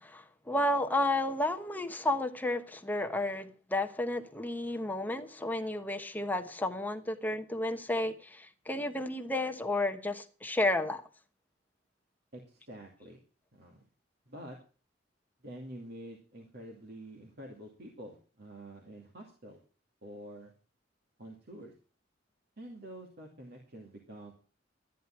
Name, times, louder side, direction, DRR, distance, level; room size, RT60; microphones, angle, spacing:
voice 1, 0.0-11.0, left 1 dB, 10° left, 1.1 m, -32 dB
voice 2, 12.3-13.2 13.5-13.9 14.3-14.6 15.4-19.6 20.0-20.5 21.2-21.7 22.6-24.3, right 1 dB, 60° right, 2.5 m, -47 dB
13.0 x 10.0 x 5.9 m
head